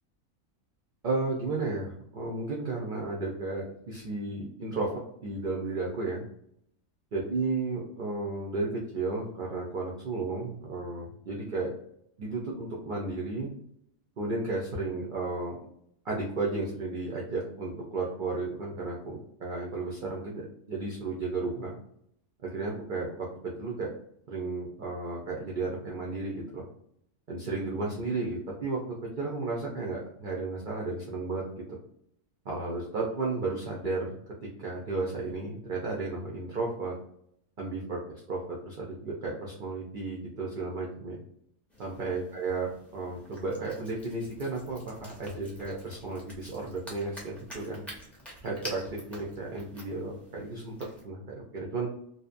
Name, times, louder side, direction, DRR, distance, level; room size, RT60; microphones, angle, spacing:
voice 1, 1.0-4.9 5.2-6.2 7.1-11.7 12.2-13.5 14.2-15.6 16.0-20.4 20.7-21.8 22.4-23.9 24.3-26.7 27.3-28.8 29.2-31.4 31.7-31.8 32.5-34.2 34.6-36.9 37.6-38.0 38.3-41.2 41.8-47.8 48.4-48.8 49.1-50.7 51.0-51.9, right 3 dB, 65° right, -3 dB, 0.5 m, -33 dB
sound 1, 41.7-51.0, equal, ahead, 0.4 m, -48 dB
2.6 x 2.0 x 2.4 m, 0.71 s
omnidirectional pair, 1.4 m